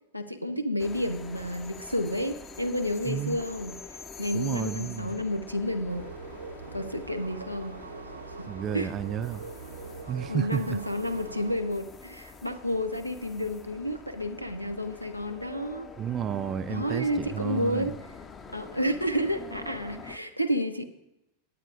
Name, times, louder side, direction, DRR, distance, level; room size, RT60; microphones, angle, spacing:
voice 1, 0.1-6.1 6.7-7.8 8.4-8.5 8.7-8.9 10.3-15.9 16.7-17.9 18.5-20.8, equal, 90° left, 11 dB, 0.6 m, -30 dB
sound 1, 0.8-20.2, left 4 dB, 20° left, 0.6 m, -46 dB
voice 2, 3.0-3.4 4.3-5.2 8.5-9.4 10.1-10.8 16.0-17.9, right 9 dB, 30° right, 15 dB, 0.3 m, -31 dB
sound 2, 5.9-11.6, right 5 dB, 75° right, 0.6 m, -42 dB
18.0 x 9.1 x 2.5 m, 0.91 s
figure-of-eight pair, 90°, 0 cm